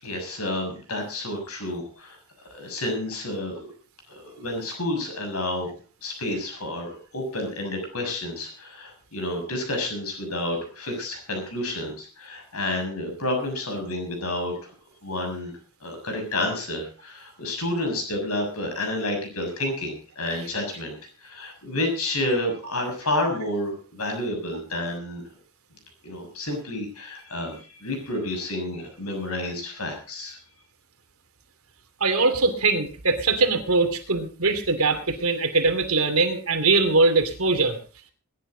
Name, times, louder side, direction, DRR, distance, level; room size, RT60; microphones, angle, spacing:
voice 1, 0.0-2.2 2.5-3.7 4.1-14.7 15.0-15.5 15.8-25.2 26.0-30.4, left 1 dB, 80° left, 4 dB, 6.5 m, -30 dB
voice 2, 32.0-37.8, right 3 dB, 75° right, 7 dB, 2.7 m, -22 dB
21.5 x 10.5 x 3.9 m, 0.37 s
head